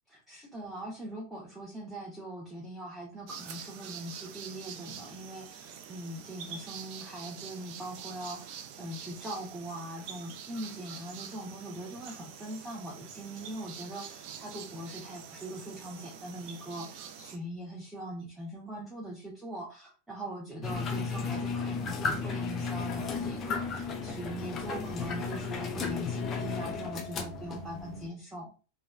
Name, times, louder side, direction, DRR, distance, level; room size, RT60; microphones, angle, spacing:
voice 1, 0.1-28.5, right 1 dB, 5° right, -4 dB, 0.7 m, -41 dB
sound 1, 3.3-17.4, right 8 dB, 45° right, 0.4 m, -46 dB
sound 2, 20.6-28.1, left 4 dB, 25° left, 0.4 m, -34 dB
3.0 x 2.2 x 2.3 m, 0.34 s
figure-of-eight pair, 90°, 0 cm